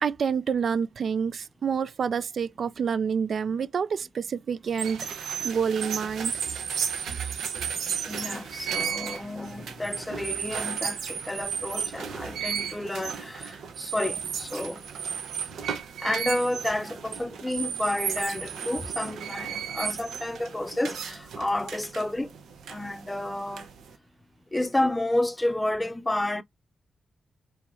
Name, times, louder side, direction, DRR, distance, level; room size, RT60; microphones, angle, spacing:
voice 1, 0.0-5.1 5.4-6.3 7.0-7.1, right 6 dB, 65° right, 0.4 m, -28 dB
sound 1, 4.7-24.0, right 7 dB, 85° right, 0.9 m, -34 dB
voice 2, 8.1-14.8 16.0-22.3 22.7-23.7 24.5-26.4, left 1 dB, 15° left, 0.6 m, -30 dB
4.6 x 3.1 x 2.7 m
cardioid pair, 75°, 0 cm